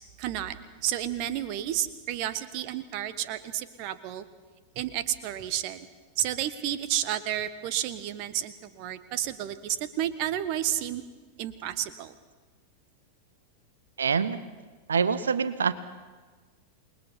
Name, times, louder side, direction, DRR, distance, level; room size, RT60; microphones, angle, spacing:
voice 1, 0.2-0.6 0.8-4.2 4.7-5.9 6.2-11.0 11.4-12.1, right 12 dB, 45° right, 13 dB, 1.3 m, -31 dB
voice 2, 14.0-14.4 14.9-15.7, right 6 dB, 70° right, 15 dB, 1.0 m, -25 dB
28.0 x 20.5 x 5.7 m, 1.4 s
figure-of-eight pair, 90°, 0 cm